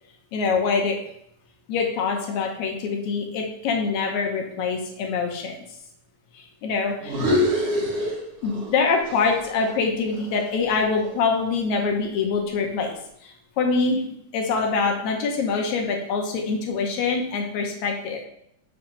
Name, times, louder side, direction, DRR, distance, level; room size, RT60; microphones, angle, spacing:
voice 1, 0.3-1.0 1.7-5.5 6.6-6.9 8.4-12.9 13.6-14.0 14.3-18.2, left 4 dB, 70° left, 1 dB, 1.9 m, -24 dB
sound 1, 7.0-8.8 9.1-11.3, left 1 dB, 55° right, 1.8 m, -26 dB
5.9 x 3.3 x 5.1 m, 0.74 s
omnidirectional pair, 3.9 m